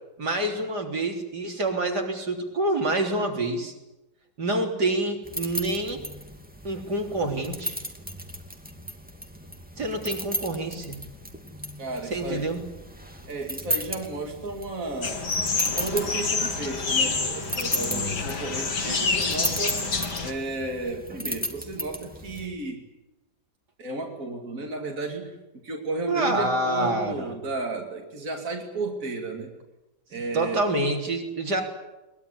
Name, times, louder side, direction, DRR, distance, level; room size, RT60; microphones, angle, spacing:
voice 1, 0.2-3.7 4.4-6.0 6.6-7.8 9.8-11.0 12.1-12.6 17.8-18.2 26.1-27.3 30.3-31.6, right 2 dB, 75° right, 2 dB, 4.1 m, -27 dB
sound 1, 5.2-22.5, equal, 5° right, 2.4 m, -36 dB
voice 2, 11.8-12.5 13.3-15.2 15.7-19.8 20.2-22.8 23.8-25.3 25.6-29.5 30.1-30.6, right 2 dB, 50° right, 1 dB, 3.0 m, -33 dB
sound 2, 15.0-20.3, left 4 dB, 90° left, 3.0 m, -27 dB
22.5 x 20.5 x 9.8 m, 1.0 s
omnidirectional pair, 1.8 m